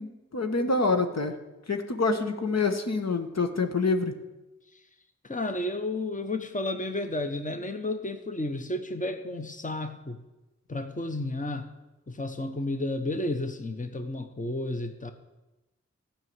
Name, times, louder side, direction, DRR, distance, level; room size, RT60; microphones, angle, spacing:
voice 1, 0.0-1.4 1.7-4.1, left 3 dB, 65° left, 6 dB, 1.2 m, -26 dB
voice 2, 5.2-10.2 10.7-11.7 12.1-15.1, left 2 dB, 25° left, 7 dB, 1.1 m, -32 dB
13.0 x 5.8 x 9.4 m, 1.0 s
wide cardioid pair, 55°, 29 cm